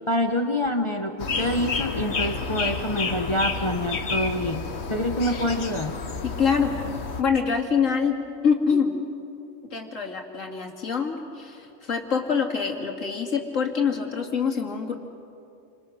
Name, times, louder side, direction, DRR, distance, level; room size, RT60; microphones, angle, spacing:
voice 1, 0.1-5.9, left 1 dB, 25° left, 4 dB, 1.1 m, -26 dB
sound 1, 1.2-7.2, left 4 dB, 60° left, 1.5 m, -30 dB
voice 2, 6.2-6.7 7.2-9.0 9.7-15.0, left 6 dB, 80° left, 1 dB, 2.7 m, -25 dB
29.5 x 26.5 x 6.3 m, 2.7 s
omnidirectional pair, 1.3 m